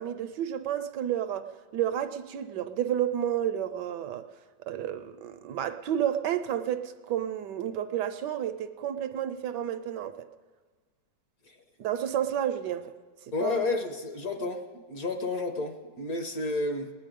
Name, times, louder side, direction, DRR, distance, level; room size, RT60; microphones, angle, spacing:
voice 1, 0.0-4.3 4.6-10.3 11.8-12.9 13.4-13.6, right 10 dB, 75° right, 1.2 m, -31 dB
voice 2, 13.3-14.6 14.9-16.9, left 3 dB, 55° left, 1.5 m, -31 dB
19.5 x 10.0 x 5.2 m
omnidirectional pair, 2.0 m